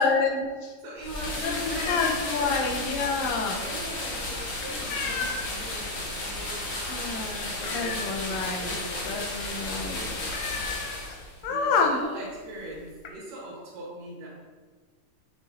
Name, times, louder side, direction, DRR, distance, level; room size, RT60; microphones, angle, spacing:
voice 1, 0.0-0.7 1.4-3.6 6.9-8.8 9.0-10.0 11.4-12.0, left 4 dB, 70° left, 2 dB, 1.8 m, -28 dB
voice 2, 0.8-2.7 3.5-8.1 8.6-9.6 9.9-10.3 11.5-14.3, right 1 dB, 85° right, -5 dB, 3.1 m, -41 dB
sound 1, 1.0-5.7 6.1-6.4 6.7-6.8 7.2-8.5 8.9-9.0 9.3-9.5 9.8-9.9 10.3-11.5 12.3-12.4 12.7-13.1, left 5 dB, 90° left, 2.3 m, -36 dB
sound 2, 1.0-11.4, left 2 dB, 50° left, 1.7 m, -33 dB
7.2 x 6.7 x 2.6 m, 1.4 s
omnidirectional pair, 3.7 m